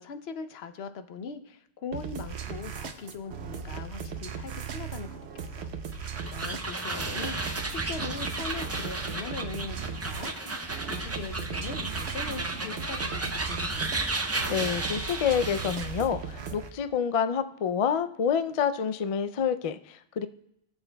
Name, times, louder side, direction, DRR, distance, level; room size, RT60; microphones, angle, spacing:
voice 1, 0.0-5.7 6.2-7.4 7.6-10.3 10.9-13.9, left 5 dB, 75° left, 9 dB, 0.9 m, -40 dB
sound 1, 1.9-16.7, right 6 dB, 85° right, 1.0 m, -38 dB
sound 2, 5.9-16.0, right 2 dB, 25° right, 0.3 m, -33 dB
sound 3, 8.7-9.3 9.6-10.7 11.0-12.0 12.4-13.4 13.8-14.1, left 1 dB, 35° left, 1.6 m, -49 dB
voice 2, 14.5-20.3, left 7 dB, 55° left, 10 dB, 0.3 m, -28 dB
21.0 x 7.1 x 2.2 m, 0.78 s
omnidirectional pair, 1.1 m